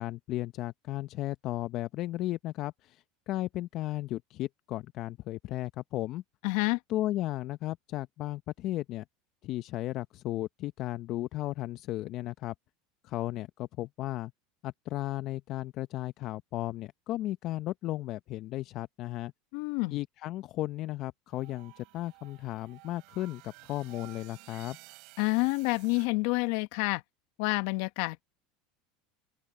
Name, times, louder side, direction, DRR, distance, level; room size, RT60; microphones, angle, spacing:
voice 1, 0.0-6.2 6.9-9.0 9.4-12.5 13.0-14.3 14.6-19.3 19.9-24.8, left 16 dB, 55° left, 0.6 m, -35 dB
voice 2, 6.4-6.8 19.5-20.0 25.2-27.0 27.4-28.2, left 26 dB, 70° left, 1.2 m, -28 dB
sound 1, 21.3-26.1, right 28 dB, 65° right, 4.1 m, -53 dB
open air
hypercardioid pair, 95°, 0 cm